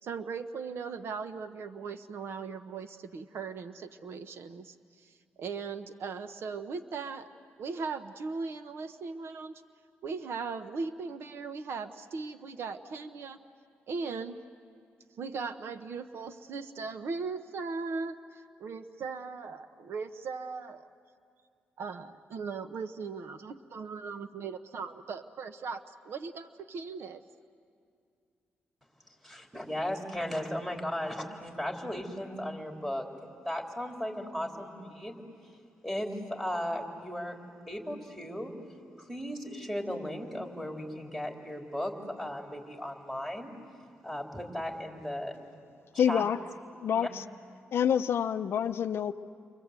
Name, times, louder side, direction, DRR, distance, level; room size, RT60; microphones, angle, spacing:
voice 1, 0.0-7.3 7.6-9.6 10.0-13.4 13.9-14.4 15.2-20.9 21.8-27.2, right 4 dB, 70° right, 10 dB, 0.9 m, -38 dB
voice 2, 29.2-33.1 33.4-35.2 35.8-37.4 37.7-38.5 39.0-43.5 44.0-45.3 46.1-46.3 46.9-47.1, equal, 5° right, 1 dB, 3.6 m, -36 dB
voice 3, 46.0-46.4 46.8-47.2 47.7-49.1, left 8 dB, 65° left, 10 dB, 0.6 m, -27 dB
30.0 x 24.0 x 8.2 m, 2.3 s
cardioid pair, 95°, 4 cm